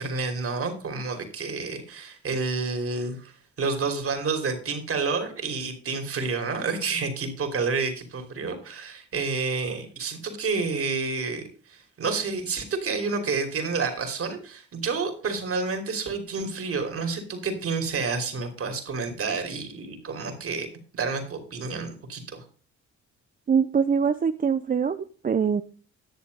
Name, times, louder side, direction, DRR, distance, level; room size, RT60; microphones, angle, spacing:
voice 1, 0.0-20.7 20.9-22.4, right 4 dB, 50° right, 6 dB, 3.1 m, -29 dB
voice 2, 23.5-25.6, right 6 dB, 30° right, 10 dB, 0.5 m, -23 dB
10.5 x 6.9 x 5.3 m, 0.40 s
cardioid pair, 90°, 30 cm